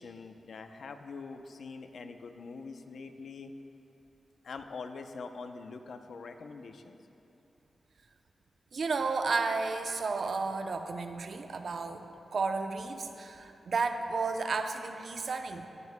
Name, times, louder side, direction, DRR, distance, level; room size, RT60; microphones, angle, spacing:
voice 1, 0.0-3.5 4.4-7.0, left 4 dB, 80° left, 7 dB, 0.6 m, -44 dB
voice 2, 8.7-12.1 12.3-15.7, right 4 dB, 70° right, 6 dB, 0.6 m, -32 dB
19.0 x 10.5 x 2.2 m, 2.9 s
wide cardioid pair, 80°, 0 cm